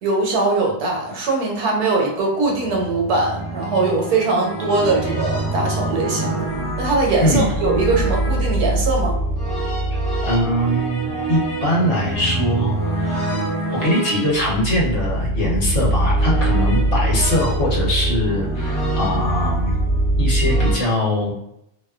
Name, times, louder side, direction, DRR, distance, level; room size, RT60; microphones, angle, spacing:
voice 1, 0.0-6.4 6.8-9.1, right 3 dB, 75° right, -1 dB, 1.2 m, -21 dB
sound 1, 2.5-20.8, right 1 dB, 25° left, 1.1 m, -23 dB
voice 2, 9.9-13.3 13.7-19.8 20.2-21.3, left 1 dB, 55° left, -5 dB, 1.1 m, -22 dB
2.7 x 2.2 x 2.3 m, 0.81 s
omnidirectional pair, 1.6 m